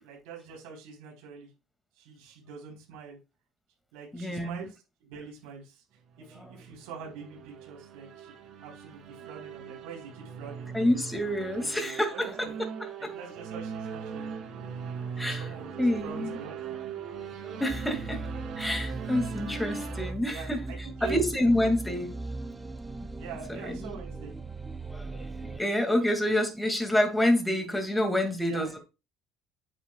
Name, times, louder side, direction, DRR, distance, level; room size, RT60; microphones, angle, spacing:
voice 1, 0.0-1.5 1.9-3.2 3.9-5.8 6.2-10.7 11.2-11.3 11.6-12.5 13.0-14.4 14.8-14.9 15.2-16.5 20.3-21.3 23.2-24.3 28.4-28.8, right 5 dB, 85° right, 4.3 m, -44 dB
voice 2, 4.1-4.6 6.3-6.5 10.7-13.1 15.2-15.5 15.8-16.4 17.2-22.2 23.5-24.0 24.9-28.8, left 1 dB, 5° left, 2.4 m, -28 dB
sound 1, 6.2-20.1, right 6 dB, 60° right, 3.1 m, -40 dB
sound 2, 17.7-25.6, right 2 dB, 15° right, 0.9 m, -39 dB
9.2 x 8.4 x 2.4 m
supercardioid pair, 90°, 0 cm